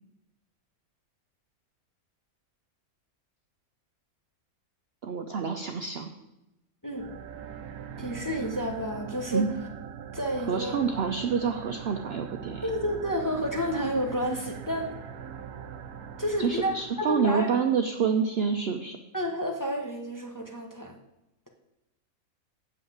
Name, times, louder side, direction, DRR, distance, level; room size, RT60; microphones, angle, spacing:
voice 1, 5.0-6.1 9.3-9.5 10.5-12.7 16.4-19.0, right 6 dB, 60° right, 6 dB, 0.7 m, -27 dB
sound 1, 6.9-17.4, right 7 dB, 75° right, 1.2 m, -41 dB
voice 2, 8.0-9.5 10.1-10.8 12.6-14.9 16.2-16.7 17.1-17.5 19.1-20.9, equal, 15° left, 1 dB, 0.9 m, -30 dB
7.3 x 5.5 x 7.3 m, 0.91 s
omnidirectional pair, 1.6 m